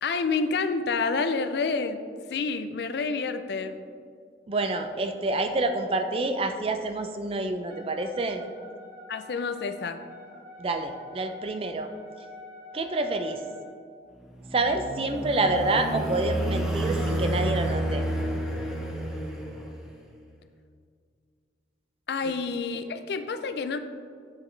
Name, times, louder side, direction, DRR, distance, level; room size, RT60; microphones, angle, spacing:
voice 1, 0.0-2.0 2.3-3.8 9.1-10.0 22.1-23.8, left 4 dB, 65° left, 10 dB, 0.4 m, -28 dB
voice 2, 4.5-8.4 10.6-11.9 12.7-13.4 14.5-18.0, right 2 dB, 30° right, 7 dB, 0.4 m, -27 dB
Wind instrument woodwind instrument, 7.7-13.8, left 2 dB, 50° right, 1.4 m, -47 dB
sound 1, 14.3-20.0, right 1 dB, 5° right, 0.7 m, -30 dB
8.3 x 5.1 x 3.2 m, 2.2 s
head